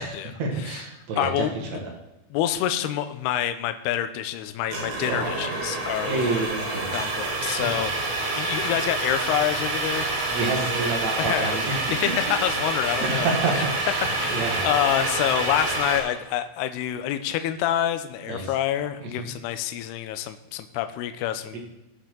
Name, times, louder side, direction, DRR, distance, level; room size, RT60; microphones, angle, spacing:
voice 1, 0.0-1.4 1.7-1.8 5.0-5.6 6.0-6.9 7.6-7.9 10.3-11.7 13.0-14.7 18.3-18.4 19.0-19.3 21.5-21.6, right 3 dB, 50° right, 0 dB, 2.4 m, -29 dB
voice 2, 1.2-1.8 2.3-6.5 6.9-7.9 8.3-10.3 11.2-11.6 11.9-13.6 14.0-21.6, left 11 dB, 80° left, 9 dB, 2.5 m, -27 dB
sound 1, 4.7-16.0, right 2 dB, 75° right, 5.2 m, -27 dB
19.0 x 6.5 x 3.9 m, 0.99 s
omnidirectional pair, 5.2 m